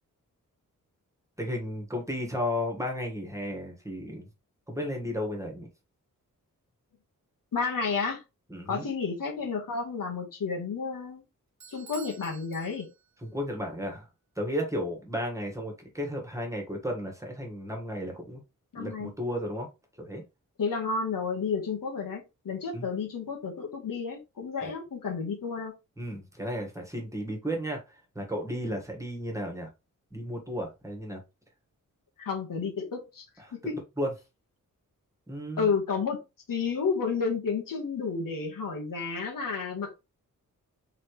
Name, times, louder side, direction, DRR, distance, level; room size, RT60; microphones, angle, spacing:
voice 1, 1.4-4.3 4.7-5.7 8.5-8.9 13.2-14.1 14.3-18.4 18.8-19.7 20.0-20.2 22.7-22.9 24.6-24.7 26.0-29.7 30.1-31.2 33.4-34.1 35.3-35.7, equal, 10° right, 1.6 m, -34 dB
voice 2, 7.5-8.2 8.7-11.2 11.7-12.9 18.7-19.1 20.6-25.7 32.2-33.2 33.6-33.8 35.6-36.2 36.5-40.0, left 5 dB, 85° left, 1.6 m, -31 dB
Bell / Doorbell, 11.6-13.3, right 6 dB, 60° right, 1.0 m, -50 dB
4.3 x 3.8 x 3.2 m
wide cardioid pair, 115°, 32 cm